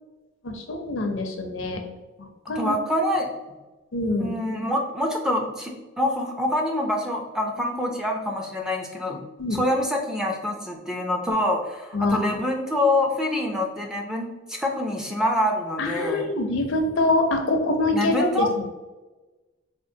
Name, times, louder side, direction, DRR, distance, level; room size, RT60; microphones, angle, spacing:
voice 1, 0.4-1.8 2.2-2.7 3.9-4.3 9.4-9.6 11.9-12.4 15.8-18.6, left 2 dB, 75° left, 4 dB, 0.6 m, -25 dB
voice 2, 2.6-3.3 4.2-9.2 9.5-16.3 17.9-18.5, left 1 dB, 5° right, 0 dB, 0.4 m, -26 dB
4.3 x 2.4 x 2.7 m, 1.2 s
head